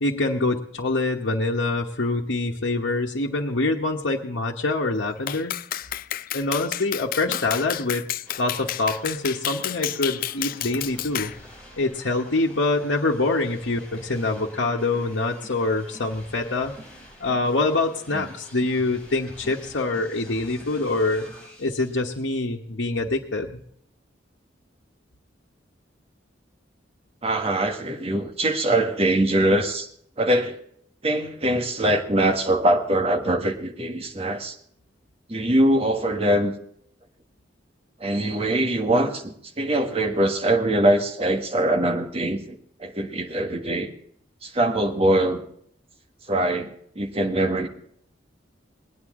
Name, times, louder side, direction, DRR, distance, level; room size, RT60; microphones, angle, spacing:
voice 1, 0.0-5.5 6.3-8.0 8.4-11.3 11.8-16.7 17.2-21.3 21.6-23.6, left 2 dB, 85° left, -3 dB, 1.2 m, -25 dB
Clapping, 5.3-11.4, left 12 dB, 50° left, 0.4 m, -31 dB
sound 1, 8.2-22.2, equal, 5° left, 5.2 m, -47 dB
voice 2, 27.2-29.9 30.2-30.6 31.0-34.5 35.3-36.5 38.0-43.9 44.4-45.4 46.3-47.7, right 1 dB, 35° right, 4 dB, 1.5 m, -23 dB
20.0 x 9.7 x 3.7 m, 0.66 s
head